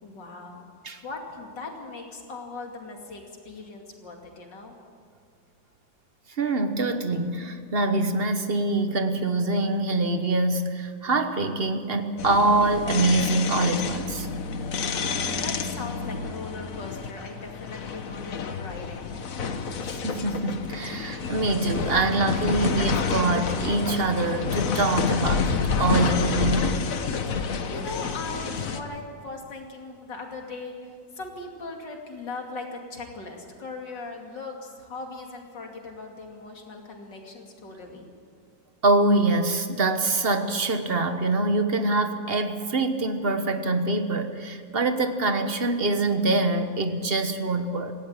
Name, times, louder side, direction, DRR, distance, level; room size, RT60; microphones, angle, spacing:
voice 1, 0.0-0.7 1.0-4.7 14.8-19.1 27.3-38.1, left 3 dB, 70° left, 2 dB, 3.2 m, -39 dB
voice 2, 6.4-14.3 20.0-26.8 38.8-47.9, right 2 dB, 35° right, 8 dB, 1.2 m, -24 dB
sound 1, 12.2-28.8, left 5 dB, 50° left, 1.4 m, -29 dB
18.0 x 16.0 x 8.9 m, 2.1 s
omnidirectional pair, 2.0 m